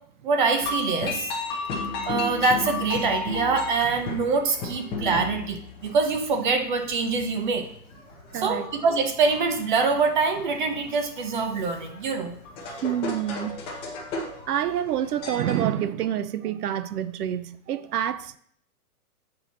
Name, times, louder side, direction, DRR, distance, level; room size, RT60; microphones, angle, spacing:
voice 1, 0.2-1.3 2.0-7.7 8.3-12.4, right 4 dB, 30° right, 0.8 m, -24 dB
sound 1, 0.6-15.7, left 3 dB, 10° left, 0.8 m, -34 dB
voice 2, 8.3-8.7 12.8-13.6 14.5-18.4, right 10 dB, 85° right, 0.7 m, -27 dB
8.6 x 4.6 x 4.1 m
hypercardioid pair, 165°, 45 cm